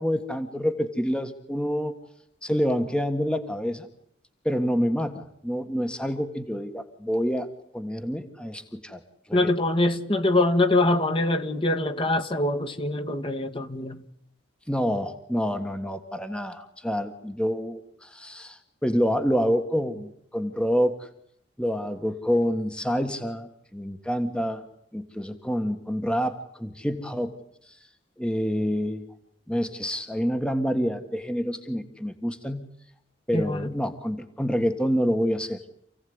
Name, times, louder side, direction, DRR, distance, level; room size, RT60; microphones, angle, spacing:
voice 1, 0.0-1.9 2.4-3.9 4.4-7.5 7.7-9.0 9.3-9.5 14.7-21.1 21.6-24.6 24.9-27.3 27.7-27.8 28.2-29.0 29.5-32.7 33.3-35.6, equal, 5° left, 8 dB, 1.6 m, -27 dB
voice 2, 9.3-14.0 33.3-33.7, left 2 dB, 30° left, 8 dB, 1.9 m, -24 dB
28.5 x 17.0 x 9.6 m, 0.73 s
head